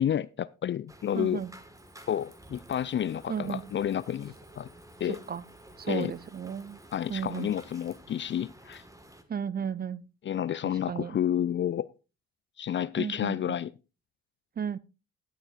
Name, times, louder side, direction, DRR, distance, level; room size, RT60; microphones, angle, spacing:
voice 1, 0.0-1.4 2.1-4.7 5.0-5.2 5.9-6.1 6.9-8.8 10.2-11.9 12.6-13.7, left 10 dB, 40° left, 0.4 m, -30 dB
sound 1, 0.9-9.2, right 1 dB, 10° right, 1.5 m, -52 dB
voice 2, 1.1-1.5 3.3-3.6 5.3-5.4 5.8-6.8 7.1-7.5 9.3-10.1 10.9-11.1 13.0-13.4 14.6-14.8, right 7 dB, 30° right, 0.5 m, -33 dB
Cricket, 1.7-8.0, right 3 dB, 70° right, 6.0 m, -66 dB
17.5 x 7.1 x 2.4 m
hypercardioid pair, 45°, 31 cm